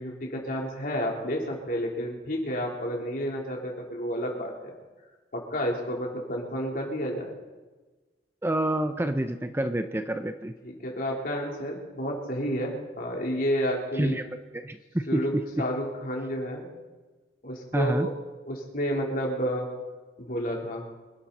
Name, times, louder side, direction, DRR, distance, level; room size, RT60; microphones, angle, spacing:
voice 1, 0.0-4.7 5.3-7.4 10.6-14.2 15.1-16.7 17.4-18.1 18.5-19.7 20.2-20.9, equal, 55° left, -1 dB, 3.9 m, -30 dB
voice 2, 8.4-10.5 14.0-14.2 14.5-15.4 17.7-18.1, right 1 dB, 15° right, 8 dB, 0.7 m, -28 dB
25.5 x 12.0 x 4.3 m, 1.3 s
head